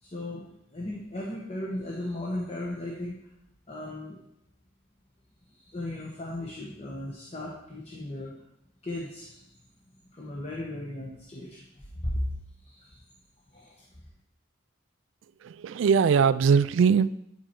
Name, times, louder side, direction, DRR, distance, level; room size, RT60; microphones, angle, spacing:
voice 1, 0.0-3.2 3.7-4.2 5.5-8.4 8.8-9.5 10.0-12.3 12.6-13.0 13.5-13.9, left 1 dB, 30° left, -3 dB, 1.0 m, -36 dB
voice 2, 15.4-17.1, right 6 dB, 70° right, 16 dB, 0.3 m, -21 dB
10.5 x 4.4 x 4.5 m, 0.80 s
head